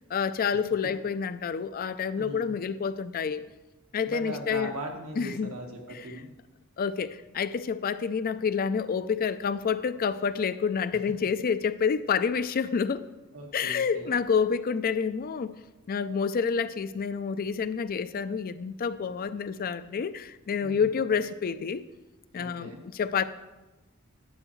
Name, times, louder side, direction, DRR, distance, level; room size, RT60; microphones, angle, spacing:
voice 1, 0.1-3.5 3.9-4.7 5.2-5.5 5.9-6.0 6.8-13.1 13.5-15.5 15.9-21.8 22.3-23.2, left 6 dB, 45° left, 13 dB, 0.4 m, -28 dB
voice 2, 2.1-2.6 4.0-6.3 13.3-14.2 20.6-21.1 22.3-22.8, right 1 dB, 85° right, 1 dB, 1.6 m, -40 dB
11.0 x 8.8 x 3.1 m, 1.1 s
head